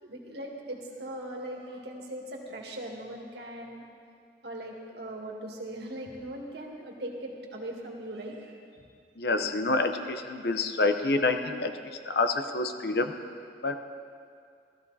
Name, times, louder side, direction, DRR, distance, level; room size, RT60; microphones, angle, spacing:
voice 1, 0.0-3.8 4.4-8.8, right 1 dB, 70° right, 0 dB, 1.9 m, -40 dB
voice 2, 9.2-11.7 12.1-13.1 13.6-13.8, left 3 dB, 65° left, 8 dB, 0.8 m, -27 dB
15.5 x 13.5 x 4.1 m, 2.3 s
head